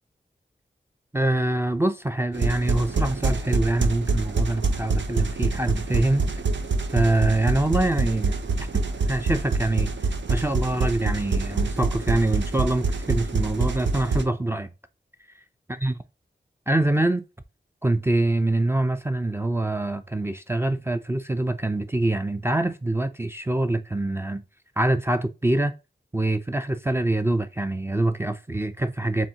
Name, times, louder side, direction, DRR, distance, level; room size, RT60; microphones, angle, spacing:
voice 1, 1.1-6.2 6.9-8.4 9.1-9.9 10.3-14.7 15.8-16.0 16.7-17.2 17.8-24.4 24.8-25.7 26.1-29.3, right 2 dB, 15° right, 0.4 m, -24 dB
sound 1, 2.3-14.2, right 3 dB, 80° right, 0.6 m, -26 dB
7.3 x 2.4 x 2.7 m
wide cardioid pair, 65°, 19 cm